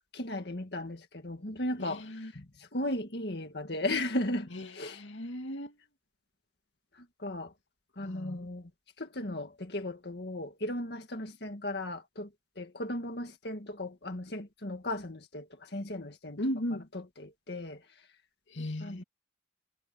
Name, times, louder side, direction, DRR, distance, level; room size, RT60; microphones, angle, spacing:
voice 1, 0.1-5.0 7.2-7.5 8.0-8.7 9.0-12.3 12.6-16.4 16.9-17.8 18.8-19.0, left 1 dB, 60° left, 2.0 m, -36 dB
voice 2, 1.8-2.3 4.5-5.7 8.0-8.5 16.4-16.9 18.5-19.0, equal, 85° left, 2.3 m, -37 dB
head